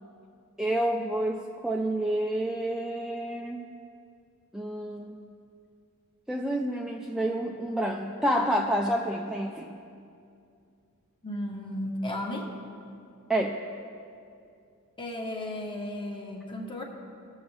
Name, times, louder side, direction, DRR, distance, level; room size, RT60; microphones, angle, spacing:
voice 1, 0.6-3.7 4.5-5.2 6.3-9.7 13.3-13.6, right 1 dB, ahead, 0 dB, 0.4 m, -29 dB
voice 2, 11.2-12.5 15.0-16.8, left 1 dB, 25° left, 1 dB, 1.1 m, -34 dB
17.0 x 7.1 x 3.3 m, 2.5 s
head